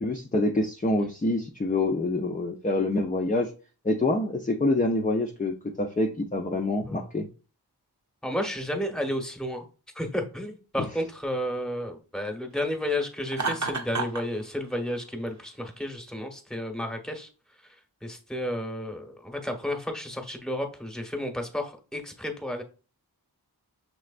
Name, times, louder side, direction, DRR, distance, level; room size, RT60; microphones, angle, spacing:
voice 1, 0.0-3.5 3.8-7.3 10.8-10.9, left 2 dB, 20° left, 2 dB, 0.6 m, -26 dB
voice 2, 8.2-9.6 9.9-17.3 18.0-22.6, left 1 dB, ahead, 4 dB, 1.1 m, -32 dB
Laughter, 13.3-14.3, right 4 dB, 45° right, 0.8 m, -29 dB
6.1 x 3.2 x 2.4 m, 0.36 s
wide cardioid pair, 45°, 40 cm